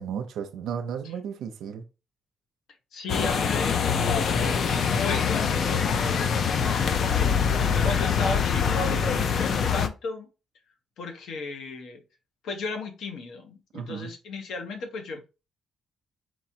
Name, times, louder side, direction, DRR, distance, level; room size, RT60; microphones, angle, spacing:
voice 1, 0.0-1.8 13.7-14.1, right 7 dB, 80° right, 0.7 m, -34 dB
voice 2, 2.9-10.3 11.0-12.0 12.4-15.2, left 3 dB, 75° left, 1.1 m, -35 dB
sound 1, 3.1-9.9, left 6 dB, 55° left, 0.5 m, -24 dB
4.8 x 3.0 x 2.8 m
cardioid pair, 125°, 0 cm